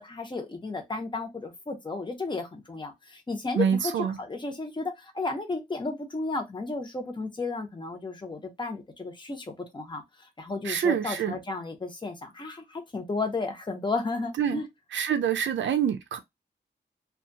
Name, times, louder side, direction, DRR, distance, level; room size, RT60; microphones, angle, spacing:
voice 1, 0.0-9.5 9.7-10.0 10.4-14.7, left 3 dB, 25° left, 0.8 m, -33 dB
voice 2, 3.6-4.2 10.6-11.4 14.4-14.6 14.9-16.2, right 8 dB, 80° right, 0.4 m, -26 dB
2.7 x 2.4 x 2.6 m
wide cardioid pair, 125°, 19 cm